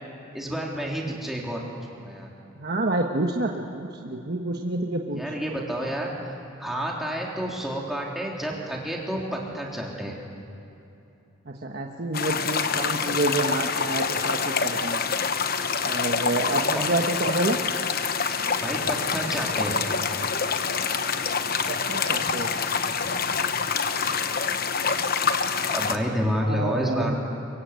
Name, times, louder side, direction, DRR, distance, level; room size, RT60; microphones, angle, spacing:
voice 1, 0.3-1.6 2.0-2.3 5.1-10.2 16.7-16.9 18.6-19.8 25.7-27.2, equal, ahead, -2 dB, 3.5 m, -29 dB
voice 2, 2.6-5.2 11.5-15.1 15.8-17.6 21.7-22.5 26.4-27.2, right 2 dB, 55° right, 1 dB, 1.3 m, -28 dB
sound 1, 12.1-26.0, left 5 dB, 50° left, 1.0 m, -26 dB
23.5 x 22.5 x 8.3 m, 2.8 s
head